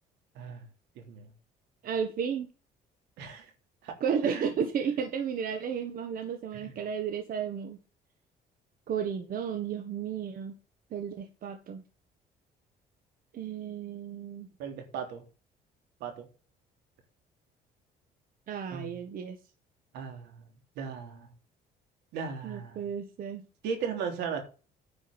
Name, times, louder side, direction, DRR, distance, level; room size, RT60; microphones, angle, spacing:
voice 1, 0.9-1.3 3.2-3.5 3.8-3.9 4.2-4.4 6.5-6.8 14.6-15.2 16.0-16.3 18.7-19.0 19.9-20.4 20.7-21.3 22.1-22.9 23.6-24.4, right 6 dB, 90° right, 4 dB, 3.4 m, -37 dB
voice 2, 1.8-2.5 4.0-7.8 8.9-10.5 10.9-11.8 13.3-14.5 18.5-19.4 22.4-23.5, right 7 dB, 55° right, 6 dB, 1.5 m, -33 dB
9.9 x 5.2 x 6.9 m, 0.34 s
cardioid pair, 110°, 17 cm